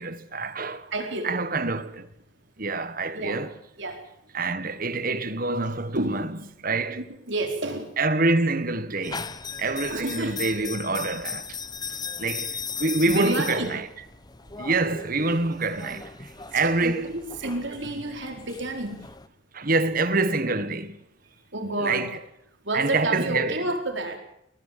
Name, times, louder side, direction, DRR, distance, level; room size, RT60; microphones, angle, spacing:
voice 1, 0.0-0.9 1.2-2.1 2.6-3.5 4.3-6.3 6.6-7.0 8.0-9.3 9.6-11.6 12.2-13.8 14.6-17.0 17.4-17.5 19.5-21.0 21.8-22.2 22.7-23.6, right 3 dB, 45° right, 1.5 m, -26 dB
voice 2, 0.9-1.3 3.1-3.4 3.8-4.0 5.9-6.2 6.9-7.9 9.6-10.4 13.1-13.7 16.5-19.0 21.5-22.1 22.6-24.2, right 2 dB, 60° right, 4.6 m, -30 dB
sound 1, 9.0-19.3, left 6 dB, 20° left, 0.8 m, -37 dB
22.5 x 19.0 x 7.6 m
head